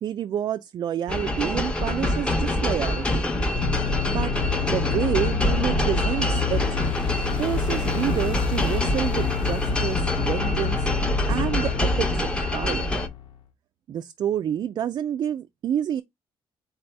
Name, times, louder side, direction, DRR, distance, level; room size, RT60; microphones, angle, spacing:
voice 1, 0.0-3.3 4.0-4.3 4.6-6.6 7.4-10.9 11.3-12.9 13.9-16.0, right 9 dB, 45° right, 0.3 m, -28 dB
sound 1, 1.1-13.1, left 1 dB, 10° left, 0.8 m, -25 dB
sound 2, 3.5-13.4, left 8 dB, 60° left, 1.0 m, -29 dB
4.0 x 2.7 x 4.4 m
cardioid pair, 140°, 10 cm